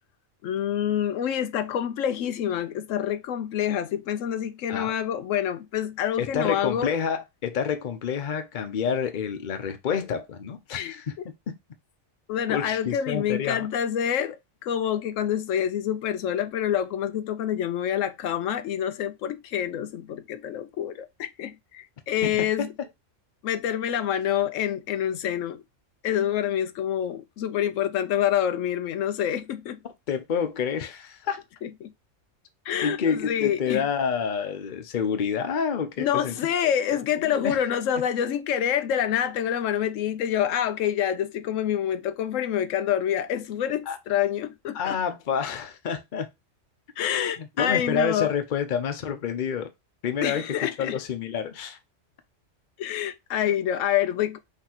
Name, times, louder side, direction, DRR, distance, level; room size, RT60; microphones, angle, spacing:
voice 1, 0.4-6.9 10.7-11.0 12.3-14.4 14.6-22.7 23.4-25.6 26.0-29.8 31.6-31.9 32.7-33.8 36.0-45.0 47.0-48.3 50.2-51.0 52.8-54.4, left 10 dB, 85° left, 1.0 m, -27 dB
voice 2, 6.2-11.1 12.5-13.7 22.2-22.7 30.1-31.4 32.8-36.4 37.2-37.6 43.9-44.0 44.7-46.3 47.4-49.7 50.0-51.8, left 7 dB, 45° left, 0.8 m, -28 dB
5.9 x 2.9 x 2.9 m
omnidirectional pair, 1.3 m